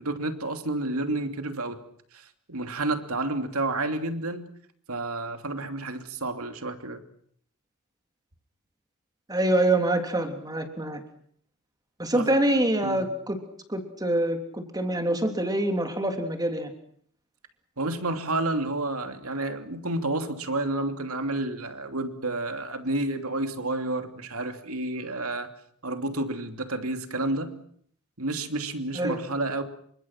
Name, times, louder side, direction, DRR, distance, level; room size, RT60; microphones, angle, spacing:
voice 1, 0.0-1.8 2.1-4.5 4.9-7.0 12.1-12.3 12.8-13.1 17.8-25.5 25.8-27.6 28.2-29.6, right 2 dB, 75° right, 7 dB, 2.9 m, -30 dB
voice 2, 9.3-11.0 12.0-13.4 13.7-16.7 28.9-29.2, right 1 dB, 20° right, 5 dB, 3.3 m, -25 dB
29.0 x 25.0 x 6.1 m, 0.63 s
head